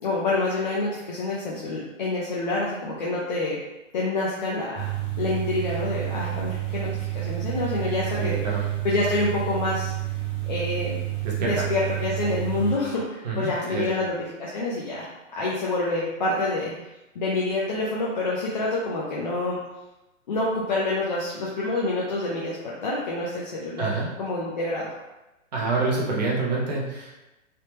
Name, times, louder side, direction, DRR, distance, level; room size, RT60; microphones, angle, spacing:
voice 1, 0.0-3.6 3.9-4.9 5.2-8.4 8.8-9.9 10.4-11.0 11.4-15.1 15.3-16.7 17.2-19.6 20.3-23.9 24.2-24.9, left 2 dB, 40° left, -6 dB, 0.4 m, -27 dB
sound 1, 4.7-12.7, right 16 dB, 10° left, 0.7 m, -30 dB
voice 2, 8.1-8.7 11.2-11.7 13.2-14.0 23.8-24.1 25.5-27.2, right 3 dB, 35° right, -3 dB, 0.6 m, -27 dB
3.3 x 2.1 x 2.9 m, 1.0 s
hypercardioid pair, 160°, 38 cm